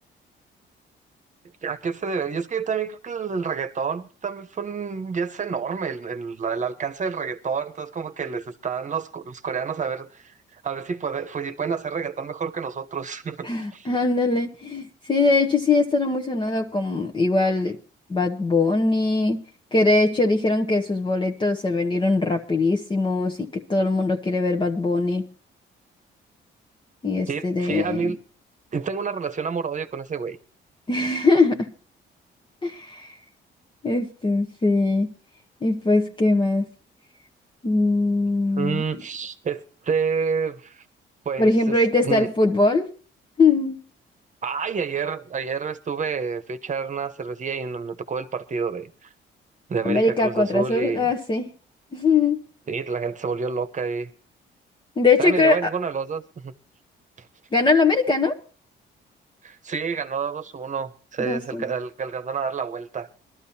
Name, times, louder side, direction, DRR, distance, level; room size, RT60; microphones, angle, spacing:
voice 1, 1.6-13.9 27.3-28.2 28.7-30.4 38.6-40.8 41.2-42.3 44.4-49.1 49.7-51.1 52.7-54.1 55.2-56.5 57.2-57.3 59.4-63.1, right 5 dB, 40° right, 1.1 m, -29 dB
voice 2, 13.4-17.8 18.1-19.4 19.7-25.3 27.0-28.1 30.9-31.7 32.6-33.2 33.8-35.1 35.6-36.7 37.6-38.8 41.4-42.9 43.4-43.8 49.8-51.5 51.9-52.4 55.0-55.6 57.5-58.4 61.2-61.6, left 3 dB, 25° left, 1.0 m, -21 dB
21.5 x 13.0 x 2.8 m
cardioid pair, 90°, 20 cm